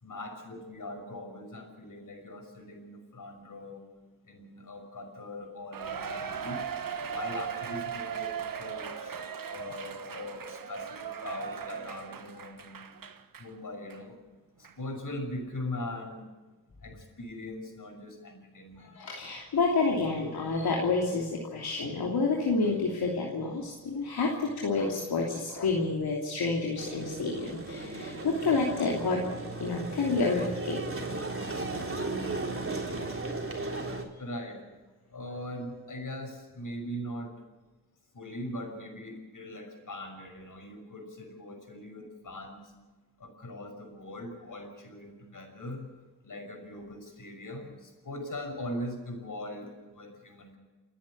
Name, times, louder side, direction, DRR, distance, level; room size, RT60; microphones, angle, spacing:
voice 1, 0.0-3.9 4.3-6.6 7.0-9.2 9.4-12.8 13.4-14.2 14.6-16.3 16.8-18.9 34.2-34.6 35.1-37.3 38.1-42.6 43.2-45.9 46.2-50.6, left 1 dB, 55° left, 5 dB, 6.0 m, -41 dB
Cheering, 5.7-13.5 13.9-14.0 14.6-14.7, right 7 dB, 60° right, 1.5 m, -38 dB
voice 2, 18.8-30.8 31.5-31.6, left 3 dB, 75° left, -2 dB, 3.1 m, -29 dB
sound 1, 26.8-34.0, right 2 dB, 35° right, 3.6 m, -36 dB
30.0 x 10.0 x 8.7 m, 1.2 s
supercardioid pair, 45°, 38 cm